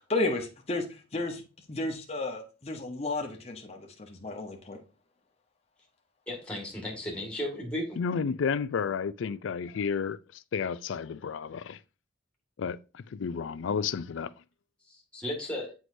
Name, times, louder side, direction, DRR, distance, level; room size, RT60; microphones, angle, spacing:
voice 1, 0.1-1.4 1.7-4.8, left 2 dB, 30° left, 0.8 m, -33 dB
voice 2, 6.3-8.0 14.9-15.7, left 1 dB, 5° left, 1.8 m, -35 dB
voice 3, 8.0-11.8 12.6-14.3, left 6 dB, 70° left, 0.4 m, -32 dB
7.7 x 4.7 x 2.6 m
head